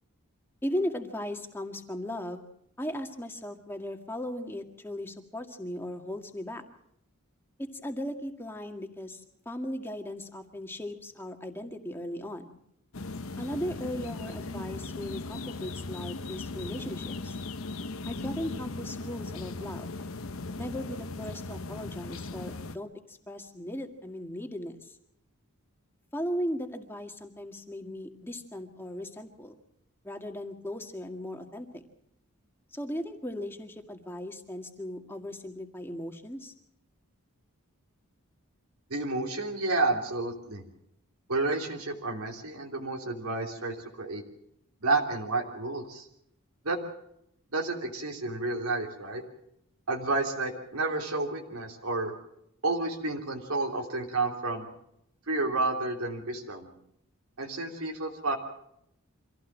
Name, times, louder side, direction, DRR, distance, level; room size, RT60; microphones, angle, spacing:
voice 1, 0.6-2.5 2.8-6.6 7.6-12.6 13.4-17.4 18.1-19.9 20.6-25.0 26.1-29.5 30.0-31.8 32.7-36.5, left 1 dB, 10° left, 4 dB, 1.9 m, -37 dB
sound 1, 12.9-22.8, left 3 dB, 75° left, 1.0 m, -38 dB
voice 2, 38.9-40.6 41.3-44.2 44.8-46.1 46.6-46.8 47.5-49.2 49.9-52.1 52.6-54.7 55.3-56.7 57.4-58.3, right 3 dB, 85° right, 1 dB, 3.3 m, -30 dB
25.5 x 16.0 x 7.4 m, 0.77 s
head